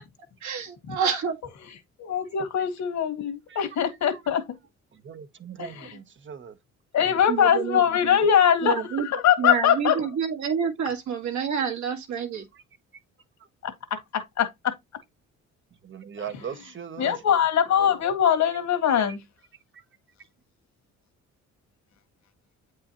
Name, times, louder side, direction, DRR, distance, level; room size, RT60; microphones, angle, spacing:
voice 1, 0.4-1.4 7.3-7.8 8.6-9.1 9.4-12.5, right 7 dB, 70° right, 1.9 m, -28 dB
voice 2, 2.0-4.4 5.6-6.0 6.9-10.1 13.6-14.7 16.2-16.7 17.0-19.2, left 8 dB, 65° left, 1.8 m, -23 dB
voice 3, 4.9-6.6 12.5-12.6 15.8-17.2 19.7-19.8, right 7 dB, 40° right, 0.9 m, -39 dB
8.4 x 4.7 x 2.9 m
cardioid pair, 90°, 30 cm